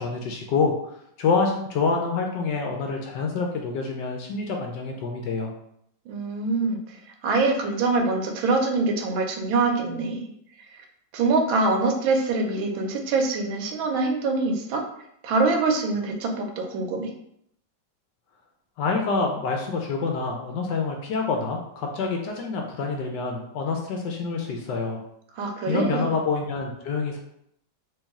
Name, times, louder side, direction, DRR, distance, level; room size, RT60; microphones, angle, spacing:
voice 1, 0.0-5.5 18.8-25.0 25.7-27.2, left 4 dB, 70° left, 2 dB, 1.1 m, -27 dB
voice 2, 6.1-7.0 7.2-10.2 10.7-10.8 11.1-14.8 15.2-17.1 25.4-26.1, right 3 dB, 85° right, 3 dB, 1.4 m, -24 dB
3.2 x 3.0 x 3.5 m, 0.73 s
omnidirectional pair, 2.2 m